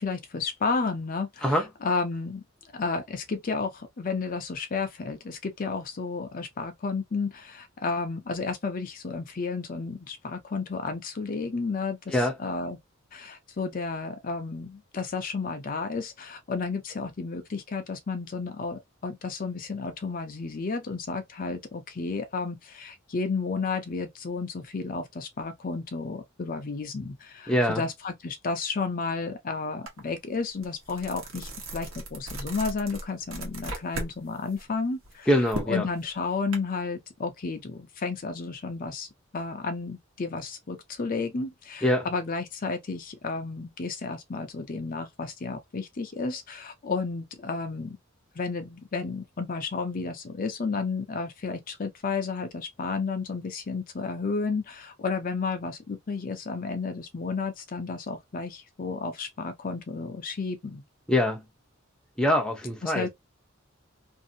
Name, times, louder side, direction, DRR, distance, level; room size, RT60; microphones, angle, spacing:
voice 1, 0.0-2.4 2.7-12.8 13.1-35.3 35.7-39.1 39.3-48.0 48.3-60.8 62.8-63.1, left 4 dB, 45° left, 0.5 m, -32 dB
voice 2, 27.5-27.8 35.3-35.9 41.8-42.1 61.1-61.4 62.2-63.1, left 1 dB, 5° left, 0.6 m, -24 dB
sound 1, 29.9-30.0 30.4-34.1 34.5-36.6, right 2 dB, 75° right, 1.1 m, -37 dB
2.6 x 2.6 x 2.7 m
head